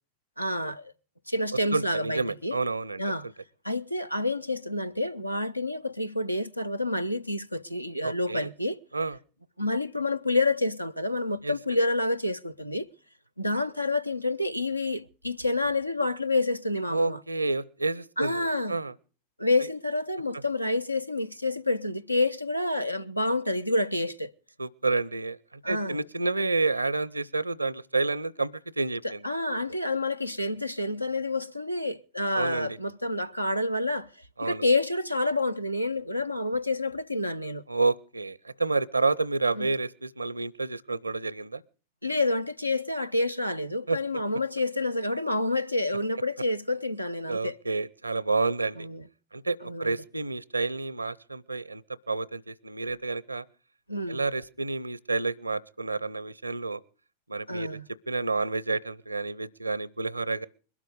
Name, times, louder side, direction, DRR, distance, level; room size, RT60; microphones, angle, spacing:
voice 1, 0.4-0.9 1.3-2.6 3.0-3.3 3.6-8.8 9.6-12.9 13.4-17.2 18.2-18.8 19.4-24.3 25.6-26.0 29.0-34.1 34.4-37.6 39.6-39.7 42.0-47.6 48.8-49.0 49.6-49.9 53.9-54.2 57.5-57.9, left 2 dB, 90° left, 0.7 m, -28 dB
voice 2, 1.7-3.0 8.0-8.5 8.9-9.2 11.4-11.5 16.9-18.9 24.6-25.4 25.7-29.2 32.3-32.8 34.4-34.6 37.7-41.6 43.9-44.0 47.3-48.9 49.3-51.8 52.1-53.4 54.1-56.8 57.3-57.7 58.1-60.5, right 3 dB, 80° right, 0.7 m, -29 dB
21.5 x 12.5 x 5.0 m
figure-of-eight pair, 90°, 0 cm